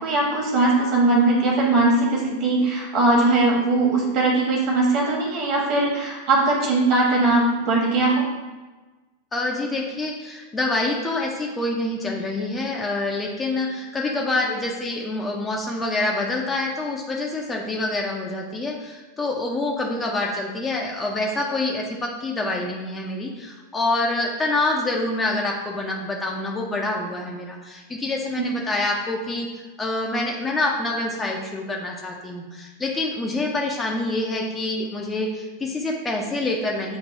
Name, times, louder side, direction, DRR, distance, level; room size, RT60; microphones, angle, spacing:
voice 1, 0.0-8.2, right 2 dB, 40° right, -2 dB, 1.2 m, -20 dB
voice 2, 9.3-29.5 29.8-37.0, left 2 dB, 15° left, -1 dB, 0.5 m, -26 dB
6.9 x 2.6 x 2.6 m, 1.2 s
figure-of-eight pair, 90°, 0 cm